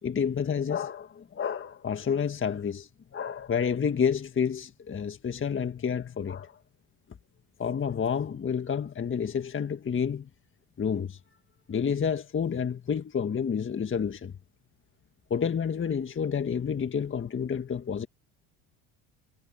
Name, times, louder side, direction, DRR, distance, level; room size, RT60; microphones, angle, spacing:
voice 1, 0.0-6.6 7.6-10.3 10.8-11.2 11.7-14.3 15.3-18.1, left 7 dB, 30° left, 1.7 m, -29 dB
supercardioid pair, 80°, 40 cm